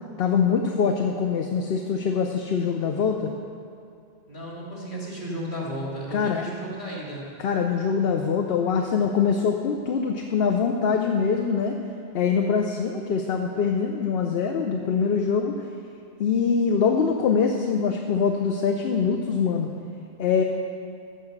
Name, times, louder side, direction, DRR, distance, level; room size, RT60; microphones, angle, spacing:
voice 1, 0.2-3.3 6.1-6.5 7.4-11.8 12.1-15.6 16.2-19.7 20.2-20.4, left 6 dB, 65° left, 3 dB, 0.8 m, -23 dB
voice 2, 4.3-7.3, right 1 dB, 45° left, -5 dB, 2.6 m, -34 dB
14.5 x 4.9 x 6.5 m, 2.5 s
omnidirectional pair, 1.2 m